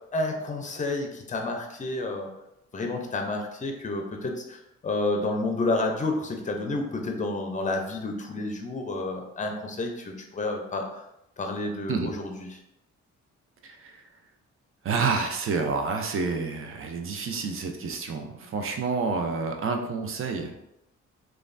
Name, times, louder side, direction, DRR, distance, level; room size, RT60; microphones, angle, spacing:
voice 1, 0.1-2.3 2.7-11.0 11.4-12.6, left 2 dB, 25° left, 3 dB, 0.6 m, -30 dB
voice 2, 13.6-14.0 14.8-20.5, right 4 dB, 45° right, 4 dB, 0.5 m, -29 dB
3.0 x 2.3 x 2.5 m, 0.86 s
cardioid pair, 75°, 29 cm